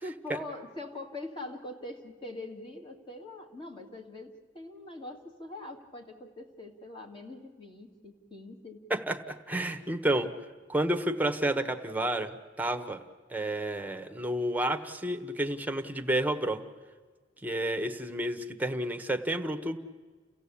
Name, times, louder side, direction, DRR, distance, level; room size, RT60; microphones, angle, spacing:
voice 1, 0.0-8.8, left 2 dB, 25° left, 3 dB, 2.5 m, -43 dB
voice 2, 8.9-10.3 10.7-12.3 12.6-13.0 13.3-16.6 17.4-19.8, right 1 dB, 10° right, 6 dB, 1.2 m, -30 dB
30.0 x 16.0 x 8.5 m, 1.5 s
head